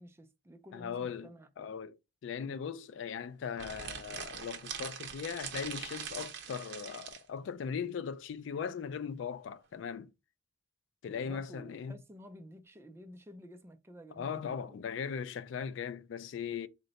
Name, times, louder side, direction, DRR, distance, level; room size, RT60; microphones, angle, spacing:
voice 1, 0.0-1.7 11.1-14.9, equal, 15° right, 0.4 m, -52 dB
voice 2, 0.7-2.0 2.2-10.1 11.0-11.9 14.2-16.7, left 7 dB, 85° left, 0.3 m, -39 dB
sound 1, 3.5-7.2, right 7 dB, 65° right, 0.7 m, -42 dB
3.8 x 2.1 x 3.9 m
head